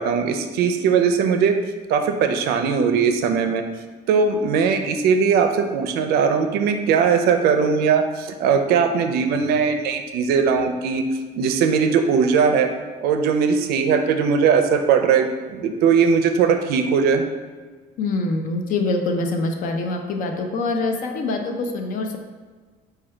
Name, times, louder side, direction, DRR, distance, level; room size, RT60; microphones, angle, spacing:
voice 1, 0.0-1.6 1.9-3.6 4.1-11.0 11.4-12.7 13.0-17.2, right 6 dB, 80° right, 6 dB, 0.5 m, -19 dB
voice 2, 18.0-22.2, left 3 dB, 60° left, 4 dB, 0.6 m, -24 dB
4.9 x 2.3 x 4.4 m, 1.4 s
cardioid pair, 150°, 16 cm